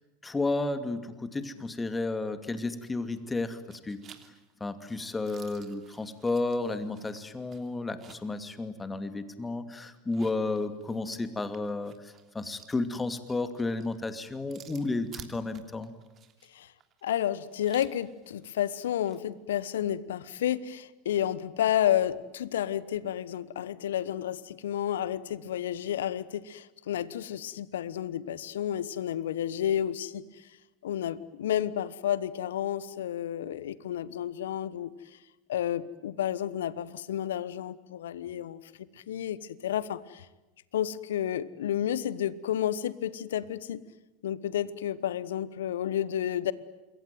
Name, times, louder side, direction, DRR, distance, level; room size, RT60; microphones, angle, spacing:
voice 1, 0.2-4.0 4.6-15.9, left 3 dB, 15° left, 10 dB, 2.6 m, -32 dB
sound 1, 3.0-3.4 3.7-8.4 8.8-8.9 9.9-19.2, right 8 dB, 35° right, 3.0 m, -54 dB
voice 2, 17.0-30.5 30.8-35.2 35.5-38.6 39.0-40.3 40.7-43.8 44.2-46.5, left 10 dB, 70° left, 18 dB, 1.1 m, -31 dB
27.5 x 22.5 x 9.3 m, 1.1 s
figure-of-eight pair, 85°, 0 cm